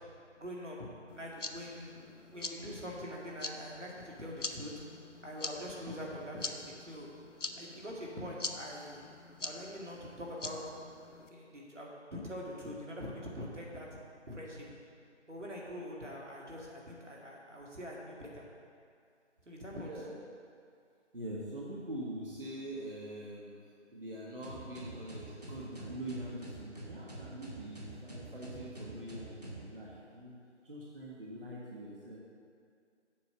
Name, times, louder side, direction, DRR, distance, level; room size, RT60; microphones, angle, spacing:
voice 1, 0.4-0.9 1.2-4.8 5.2-7.1 7.5-9.1 9.4-10.6 11.3-14.0 14.3-14.7 15.3-18.4 19.4-19.9, equal, 80° right, -3 dB, 2.2 m, -44 dB
sound 1, 1.1-11.3, left 3 dB, 85° left, 0.8 m, -45 dB
voice 2, 19.8-20.2 21.1-23.5 23.9-30.3 30.6-32.2, right 1 dB, 50° right, -5 dB, 1.5 m, -43 dB
sound 2, 24.4-29.7, right 2 dB, 35° right, 1.1 m, -46 dB
7.7 x 5.4 x 6.8 m, 2.3 s
figure-of-eight pair, 165°, 36 cm